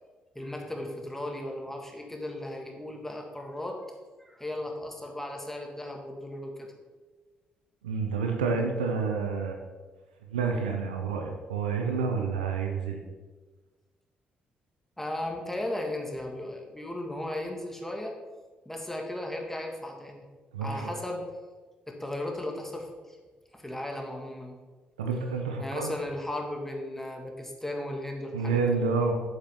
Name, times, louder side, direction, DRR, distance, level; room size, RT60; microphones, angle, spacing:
voice 1, 0.4-3.8 4.2-6.7 15.0-18.1 18.7-20.3 20.6-21.3 21.9-23.2 23.5-24.6 25.6-28.7, left 1 dB, 5° left, 1 dB, 2.0 m, -36 dB
voice 2, 7.8-9.6 10.3-13.0 20.5-20.9 25.0-25.9 28.3-29.1, right 5 dB, 90° right, 3 dB, 0.8 m, -29 dB
8.1 x 7.5 x 3.8 m, 1.3 s
hypercardioid pair, 45°, 4 cm